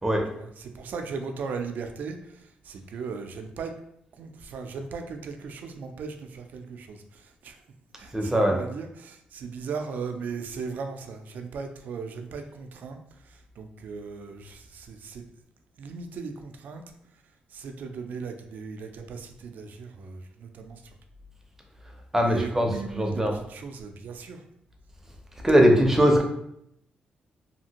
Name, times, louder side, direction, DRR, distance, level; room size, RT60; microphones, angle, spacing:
voice 1, 0.3-3.8 4.1-7.6 8.0-15.2 15.8-16.9 17.5-21.0 22.2-24.4, right 5 dB, 70° right, 6 dB, 0.4 m, -37 dB
voice 2, 8.1-8.6 22.1-23.4 25.4-26.2, equal, 15° right, 2 dB, 0.5 m, -21 dB
2.7 x 2.5 x 2.8 m, 0.75 s
cardioid pair, 120°, 3 cm